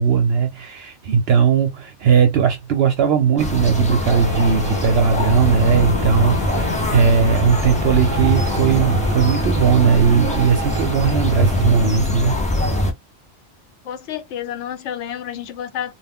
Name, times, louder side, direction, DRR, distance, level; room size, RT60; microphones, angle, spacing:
voice 1, 0.0-12.4, right 6 dB, 65° right, 0.7 m, -18 dB
sound 1, 3.4-12.9, left 1 dB, 10° left, 0.4 m, -22 dB
sound 2, 4.1-11.9, right 1 dB, 30° left, 1.0 m, -31 dB
voice 2, 13.8-15.9, left 10 dB, 80° left, 0.9 m, -30 dB
2.2 x 2.1 x 3.5 m
omnidirectional pair, 1.2 m